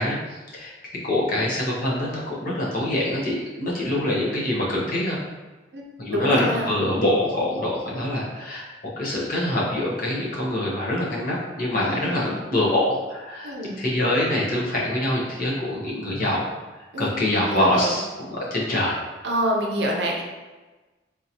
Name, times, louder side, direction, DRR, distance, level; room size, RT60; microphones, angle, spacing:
voice 1, 0.0-5.2 6.0-8.6 9.0-16.5 17.0-18.0 18.3-19.0, left 1 dB, 50° left, -5 dB, 0.9 m, -24 dB
voice 2, 6.1-6.7 11.8-12.4 13.4-13.9 16.9-17.1 17.4-17.9 19.2-20.2, right 1 dB, 65° right, 0 dB, 0.6 m, -27 dB
3.7 x 2.7 x 2.8 m, 1.2 s
head